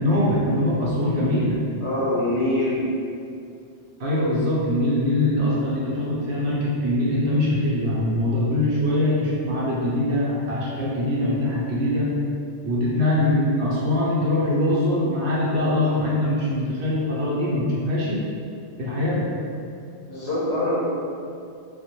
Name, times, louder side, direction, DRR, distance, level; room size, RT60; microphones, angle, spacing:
voice 1, 0.0-1.6 4.0-12.1 12.6-18.3 18.8-19.3, left 1 dB, 80° right, -6 dB, 0.9 m, -22 dB
voice 2, 1.8-2.9 20.1-20.8, left 1 dB, 80° left, -8 dB, 0.9 m, -24 dB
2.2 x 2.0 x 2.8 m, 2.4 s
omnidirectional pair, 1.1 m